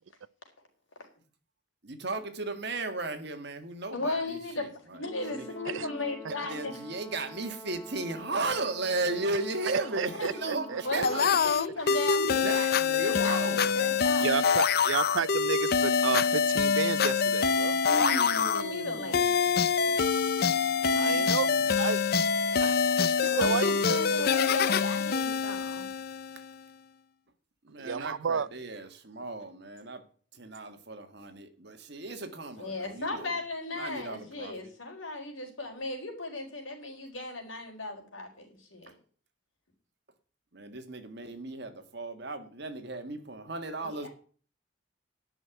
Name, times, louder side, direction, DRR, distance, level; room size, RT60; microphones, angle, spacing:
voice 1, 1.8-5.0 5.3-5.5 6.5-11.4 12.4-13.7 17.8-19.6 20.9-21.7 27.6-30.0 30.3-33.4 33.8-34.5 40.5-44.1, right 2 dB, 55° right, 1.8 m, -36 dB
voice 2, 3.9-6.8 10.1-12.5 13.0-13.4 13.7-14.3 18.0-19.2 19.9-20.0 23.2-25.9 32.6-39.0 43.8-44.1, left 2 dB, 80° left, 4.3 m, -36 dB
Brass instrument, 5.0-11.4, equal, 10° left, 1.0 m, -47 dB
voice 3, 10.0-11.0 14.2-17.8 21.0-21.5 21.8-22.0 22.6-24.4 27.8-28.5, right 6 dB, 75° right, 0.5 m, -32 dB
sound 1, 11.0-26.5, left 6 dB, 50° left, 0.5 m, -26 dB
11.0 x 6.4 x 9.2 m
head